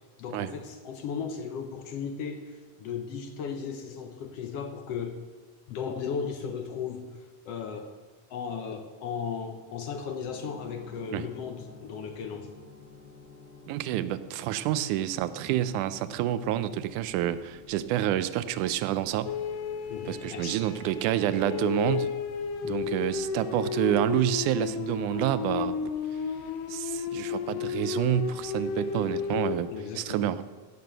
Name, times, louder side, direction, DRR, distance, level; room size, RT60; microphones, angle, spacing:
voice 1, 0.2-5.2 5.7-7.1 7.4-7.9 8.3-12.5 19.9-20.6 22.6-22.9 29.7-30.3, left 6 dB, 70° left, 6 dB, 1.5 m, -36 dB
sound 1, 10.2-28.6, left 3 dB, 20° left, 1.5 m, -54 dB
voice 2, 13.7-19.3 20.1-22.1 22.6-25.9 26.7-29.7 30.0-30.4, right 12 dB, 80° right, 14 dB, 2.0 m, -28 dB
sound 2, 19.3-29.6, left 6 dB, 90° left, 2.4 m, -33 dB
16.5 x 6.8 x 6.6 m, 1.4 s
omnidirectional pair, 3.7 m